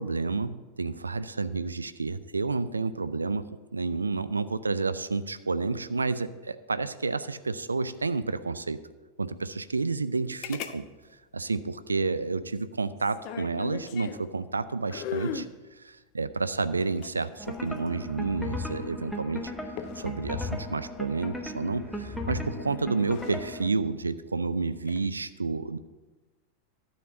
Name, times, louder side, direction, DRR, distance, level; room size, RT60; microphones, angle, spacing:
voice 1, 0.0-8.8 9.2-10.8 11.3-15.5 15.8-19.5 20.0-25.8, right 3 dB, 80° right, 13 dB, 0.4 m, -30 dB
sound 1, 10.4-10.8 11.0-11.1 13.0-14.3 14.9-15.5 16.8-18.0 19.8-20.2 22.0-22.4 22.9-23.4 24.7-25.1, left 8 dB, 45° left, 0.6 m, -38 dB
sound 2, 17.4-23.7, left 1 dB, 5° left, 0.9 m, -36 dB
12.5 x 4.3 x 7.6 m, 1.3 s
figure-of-eight pair, 90°, 0 cm